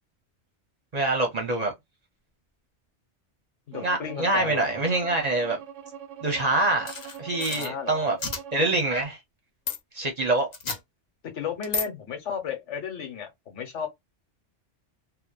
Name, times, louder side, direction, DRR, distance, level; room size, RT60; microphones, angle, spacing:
voice 1, 0.9-1.7 3.8-5.6 6.2-6.9 7.2-8.2 8.5-9.2 9.9-10.5, right 2 dB, 40° right, 0.7 m, -25 dB
voice 2, 3.7-4.8 7.5-8.1 11.3-13.9, left 6 dB, 85° left, 1.3 m, -34 dB
Bowed string instrument, 3.7-8.8, right 8 dB, 90° right, 0.9 m, -42 dB
sound 1, 6.9-7.7 8.2-8.4 9.7-9.8 10.5-10.8 11.6-11.9, left 4 dB, 45° left, 0.7 m, -31 dB
2.8 x 2.1 x 2.2 m
omnidirectional pair, 1.2 m